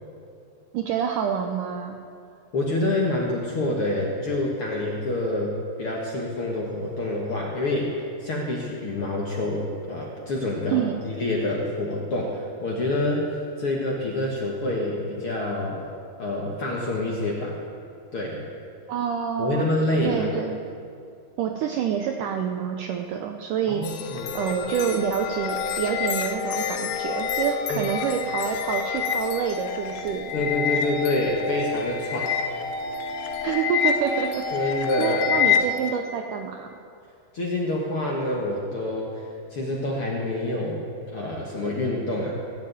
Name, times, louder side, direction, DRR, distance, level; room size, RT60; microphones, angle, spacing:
voice 1, 0.7-2.0 10.7-11.0 18.9-19.7 20.0-20.6 21.4-23.9 24.3-30.3 33.4-36.7, right 8 dB, 85° right, 4 dB, 1.9 m, -27 dB
voice 2, 2.5-15.9 16.2-17.6 18.1-18.4 19.4-20.2 23.6-24.4 27.7-27.8 30.3-32.4 34.5-35.4 37.3-39.2 39.5-40.8 41.1-42.3, left 1 dB, 55° left, -3 dB, 1.6 m, -27 dB
sound 1, 23.8-35.9, left 7 dB, 80° left, 2.8 m, -28 dB
16.5 x 7.5 x 9.1 m, 2.4 s
omnidirectional pair, 4.6 m